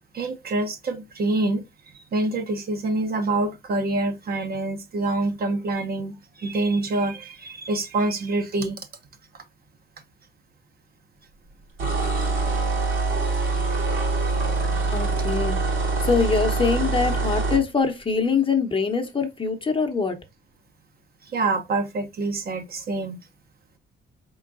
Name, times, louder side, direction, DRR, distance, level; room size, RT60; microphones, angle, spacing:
voice 1, 0.1-1.7 1.9-8.8 21.3-23.2, right 2 dB, 50° right, 0.9 m, -26 dB
sound 1, 11.8-17.6, right 3 dB, 80° right, 2.3 m, -24 dB
voice 2, 14.9-20.2, left 5 dB, 25° left, 0.9 m, -24 dB
4.3 x 3.8 x 2.6 m
cardioid pair, 90°, 20 cm